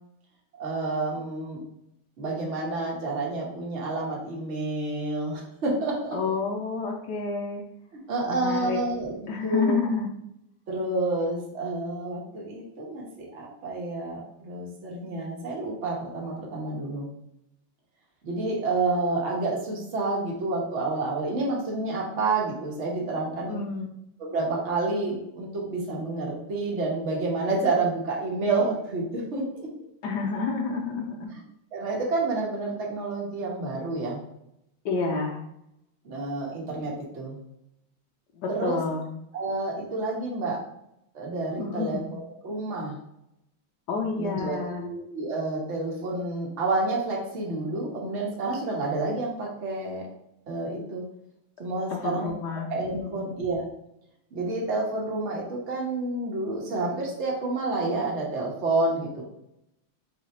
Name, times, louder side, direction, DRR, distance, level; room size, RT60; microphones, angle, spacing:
voice 1, 0.6-1.6 2.2-6.2 8.1-9.8 10.7-17.1 18.2-23.6 24.2-29.7 31.7-34.2 36.0-37.4 38.5-38.8 39.3-40.6 41.1-43.0 44.1-50.1 50.5-51.0 51.6-52.3 52.7-53.6 54.3-59.2, right 2 dB, 40° right, -2 dB, 1.1 m, -29 dB
voice 2, 6.1-7.6 8.3-8.8 9.3-10.1 23.5-23.9 30.0-31.3 34.8-35.4 38.4-39.0 41.6-42.1 43.9-44.8 51.9-52.7 53.0-53.3, left 4 dB, 70° left, -1 dB, 1.0 m, -29 dB
3.8 x 3.3 x 4.1 m, 0.80 s
omnidirectional pair, 2.4 m